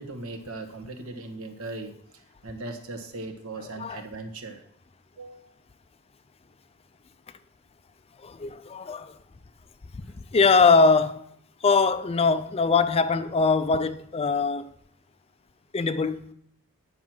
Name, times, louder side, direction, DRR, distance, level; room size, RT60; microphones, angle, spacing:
voice 1, 0.0-2.0 2.4-4.6 5.2-5.5, right 2 dB, 75° right, 1.2 m, -38 dB
voice 2, 8.2-9.1 10.3-11.2 11.6-14.7 15.7-16.3, left 4 dB, 25° left, 0.4 m, -22 dB
9.4 x 5.9 x 6.1 m
head